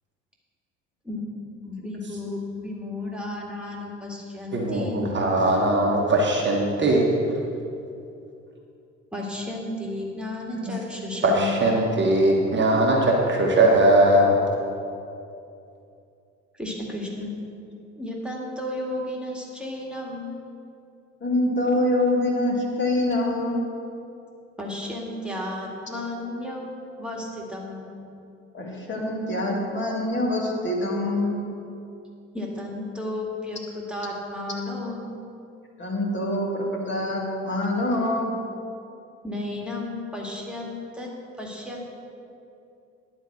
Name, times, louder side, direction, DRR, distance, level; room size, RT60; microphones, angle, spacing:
voice 1, 1.7-5.0 9.1-11.5 16.6-17.3 18.0-20.4 24.6-26.7 27.0-27.9 32.3-35.1 39.2-41.1 41.4-41.8, left 1 dB, 5° right, -2 dB, 2.1 m, -33 dB
voice 2, 4.5-7.1 11.2-14.4, right 1 dB, 30° right, -1 dB, 1.4 m, -20 dB
voice 3, 21.2-23.6 28.5-31.4 35.8-38.3, left 1 dB, 30° left, -2 dB, 2.3 m, -25 dB
10.5 x 5.1 x 7.7 m, 2.6 s
figure-of-eight pair, 55°, 36 cm